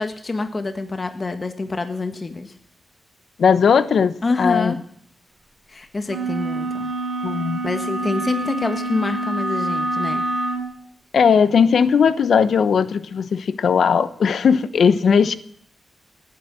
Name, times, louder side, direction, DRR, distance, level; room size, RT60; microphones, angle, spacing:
voice 1, 0.0-2.5 4.2-4.8 5.7-6.9 7.6-10.2, left 3 dB, 35° left, 7 dB, 1.5 m, -26 dB
voice 2, 3.4-4.1 4.4-4.7 7.2-7.6 11.1-15.4, left 6 dB, 75° left, 14 dB, 0.9 m, -17 dB
sound 1, 6.1-10.7, right 2 dB, 40° right, 4.1 m, -26 dB
19.0 x 9.4 x 7.6 m, 0.63 s
cardioid pair, 80°, 0 cm